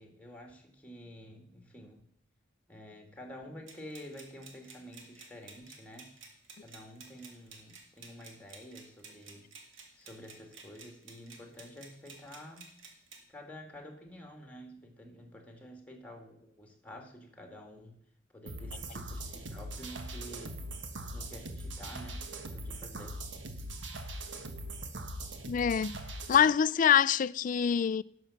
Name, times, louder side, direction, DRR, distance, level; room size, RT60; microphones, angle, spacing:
voice 1, 0.0-2.1 2.7-6.1 6.6-9.5 9.9-12.7 13.3-18.0 18.3-20.6 21.1-23.2, equal, 10° left, 2.1 m, -49 dB
sound 1, 3.7-13.2, right 4 dB, 85° right, 2.0 m, -53 dB
sound 2, 18.5-26.5, right 1 dB, 65° right, 1.2 m, -41 dB
voice 2, 25.5-26.0 26.3-28.0, left 8 dB, 45° left, 0.3 m, -25 dB
11.0 x 6.2 x 7.0 m
head